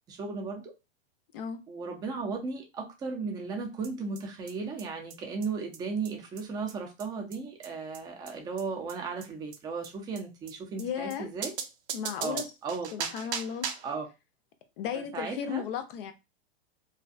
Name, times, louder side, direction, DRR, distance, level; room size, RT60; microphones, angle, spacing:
voice 1, 0.1-0.7 1.7-11.5 12.2-13.1 13.8-14.1 14.9-15.6, right 4 dB, 15° right, 0.4 m, -35 dB
sound 1, 3.8-3.9 4.1-4.2 4.5-4.6 4.8-4.9 5.1-5.2 5.4-5.5 5.7-5.8 6.0-6.1 6.4-6.5 6.7-6.8 7.0-7.1 7.3-7.4 7.6-7.7 7.9-8.0 8.3-8.4 8.6-8.7 8.9-9.0 9.2-9.3 9.5-9.6 9.8-9.9 10.1-10.2 10.5-10.6 10.8-10.9 11.1-11.2 11.4-13.9, right 7 dB, 85° right, 0.6 m, -37 dB
voice 2, 10.8-11.3 11.9-12.5 12.9-13.7 14.8-16.1, left 8 dB, 55° left, 0.5 m, -35 dB
2.5 x 2.2 x 2.5 m
supercardioid pair, 135°, 32 cm